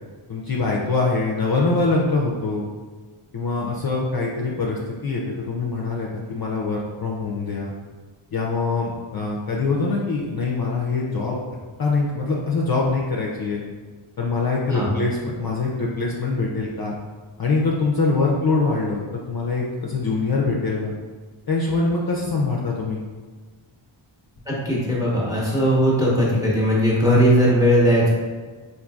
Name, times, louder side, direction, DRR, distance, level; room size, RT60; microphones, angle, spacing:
voice 1, 0.3-2.6 3.3-7.7 8.3-11.4 11.8-13.6 14.2-16.9 17.4-20.9 21.5-23.0, left 3 dB, 50° left, -3 dB, 0.5 m, -23 dB
voice 2, 24.5-28.1, equal, 5° right, -6 dB, 0.9 m, -18 dB
3.8 x 2.6 x 2.3 m, 1.4 s
wide cardioid pair, 60°, 50 cm